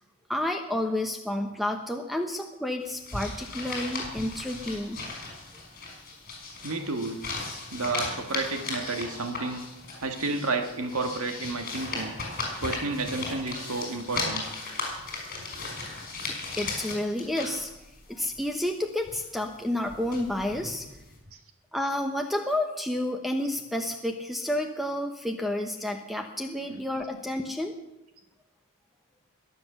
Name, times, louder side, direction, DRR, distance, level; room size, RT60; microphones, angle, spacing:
voice 1, 0.3-5.0 16.3-17.7 18.1-20.9 21.7-27.7, left 1 dB, ahead, 5 dB, 0.9 m, -30 dB
sound 1, 2.8-18.7 19.0-21.2, left 3 dB, 40° left, 5.7 m, -37 dB
voice 2, 6.6-7.2 7.7-9.7 10.0-12.1 12.6-14.4 21.3-21.4 26.7-26.8, right 3 dB, 70° right, 5 dB, 1.7 m, -31 dB
22.0 x 7.9 x 6.8 m, 0.94 s
head